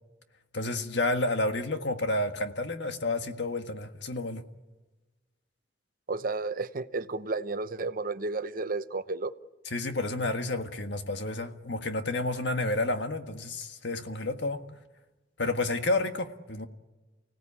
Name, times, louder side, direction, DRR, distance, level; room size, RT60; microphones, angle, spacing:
voice 1, 0.5-4.4 9.7-14.6 15.4-16.7, left 2 dB, 75° left, 1.7 m, -30 dB
voice 2, 6.1-9.3, right 3 dB, 50° right, 0.9 m, -32 dB
30.0 x 17.5 x 8.7 m
head